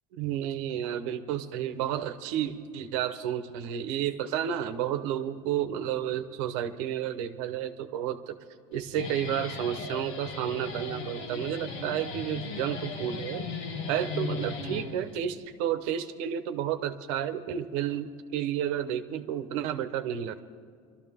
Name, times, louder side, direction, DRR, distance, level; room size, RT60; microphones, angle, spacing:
voice 1, 0.1-8.4 8.7-13.5 13.9-20.4, right 10 dB, 75° right, 10 dB, 1.0 m, -31 dB
Guitar, 8.7-15.3, left 4 dB, 80° left, 2.1 m, -37 dB
24.5 x 13.0 x 3.6 m, 2.2 s
cardioid pair, 165°, 16 cm